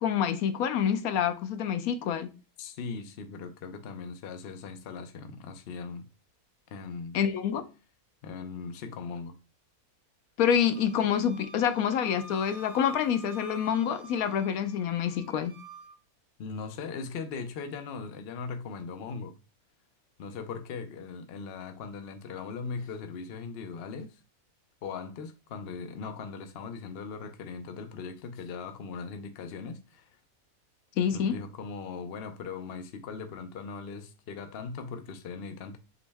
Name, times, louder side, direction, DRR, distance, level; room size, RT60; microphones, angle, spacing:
voice 1, 0.0-2.3 7.1-7.6 10.4-15.5 31.0-31.4, left 8 dB, 75° left, 1.0 m, -27 dB
voice 2, 2.6-6.0 6.7-7.2 8.2-9.3 16.4-19.4 20.2-24.2 24.8-30.1 31.1-35.8, left 5 dB, 55° left, 0.7 m, -39 dB
Wind instrument woodwind instrument, 10.7-16.0, right 1 dB, 70° right, 1.4 m, -48 dB
6.1 x 2.1 x 3.4 m
omnidirectional pair, 1.6 m